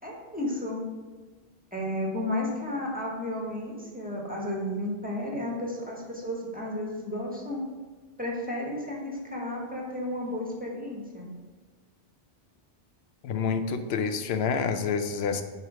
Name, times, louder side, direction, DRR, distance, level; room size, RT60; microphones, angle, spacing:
voice 1, 0.0-0.8 1.7-7.6 8.2-11.3, left 1 dB, 10° right, -3 dB, 1.2 m, -33 dB
voice 2, 13.2-15.4, left 6 dB, 80° left, 9 dB, 0.8 m, -28 dB
5.5 x 4.6 x 4.7 m, 1.4 s
omnidirectional pair, 1.0 m